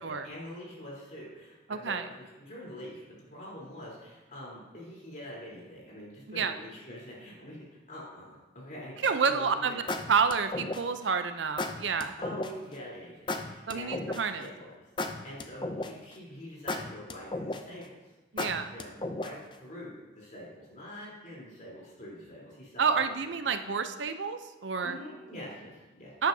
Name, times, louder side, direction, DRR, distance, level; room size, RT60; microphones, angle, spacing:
voice 1, 0.0-9.8 12.2-14.7 15.0-17.9 18.4-23.1 23.4-23.5 24.8-26.1, equal, 45° left, -5 dB, 3.7 m, -45 dB
voice 2, 1.7-2.0 6.3-6.5 9.0-9.7 10.1-12.1 13.7-14.5 18.3-18.7 22.8-25.0 26.2-26.3, right 5 dB, 85° right, 9 dB, 0.6 m, -29 dB
glitch step, 9.0-9.3 9.9-11.0 11.6-12.5 13.3-14.4 15.0-16.1 16.7-17.8 18.4-19.5, left 2 dB, 25° left, 0.5 m, -34 dB
12.0 x 9.1 x 2.8 m, 1.1 s
head